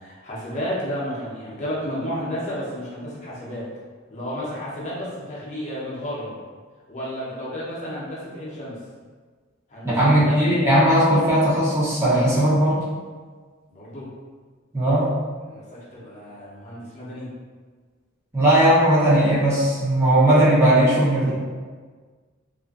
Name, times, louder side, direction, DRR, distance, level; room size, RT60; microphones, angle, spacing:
voice 1, 0.0-3.7 4.1-6.3 6.9-8.8 9.7-10.4 13.7-14.1 15.4-17.3, equal, 35° left, -7 dB, 0.7 m, -32 dB
voice 2, 10.0-12.8 14.7-15.1 18.3-21.3, right 1 dB, 15° right, -9 dB, 0.6 m, -18 dB
2.5 x 2.4 x 2.3 m, 1.5 s
head